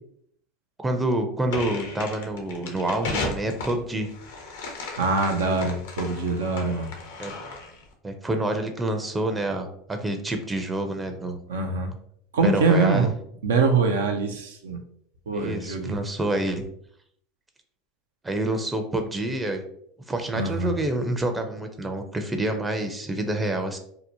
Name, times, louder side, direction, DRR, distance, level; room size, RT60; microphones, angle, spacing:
voice 1, 0.8-4.1 7.2-7.3 8.0-11.4 12.4-13.1 15.3-16.6 18.2-19.6 20.1-23.8, right 1 dB, 15° right, 5 dB, 0.5 m, -27 dB
sound 1, 1.5-7.8, left 3 dB, 75° left, 0.5 m, -35 dB
voice 2, 5.0-6.9 11.5-11.9 12.3-13.1 13.4-14.8 15.3-16.0 20.3-20.8, right 3 dB, 80° right, 3 dB, 0.4 m, -23 dB
2.7 x 2.1 x 2.6 m, 0.67 s
hypercardioid pair, 85°, 0 cm